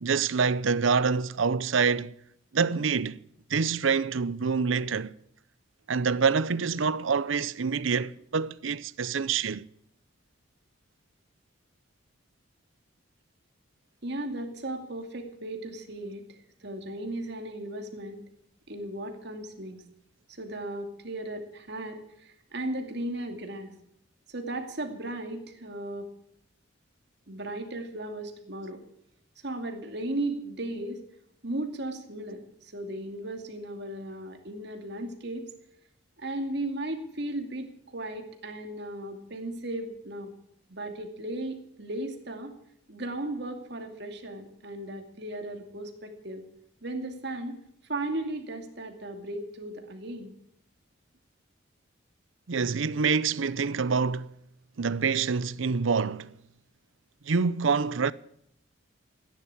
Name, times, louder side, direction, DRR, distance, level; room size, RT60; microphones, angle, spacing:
voice 1, 0.0-2.1 2.5-3.2 3.5-5.1 5.9-9.7 52.5-54.3 54.8-56.3 57.3-58.1, right 5 dB, 80° right, 0.6 m, -26 dB
voice 2, 14.0-18.2 18.7-19.8 20.3-23.7 24.3-26.1 27.3-28.8 29.4-31.0 31.4-35.5 36.2-40.3 40.7-42.5 42.9-46.5 46.8-47.6 47.9-50.3, right 1 dB, 55° right, 2.5 m, -36 dB
16.0 x 10.5 x 8.5 m
head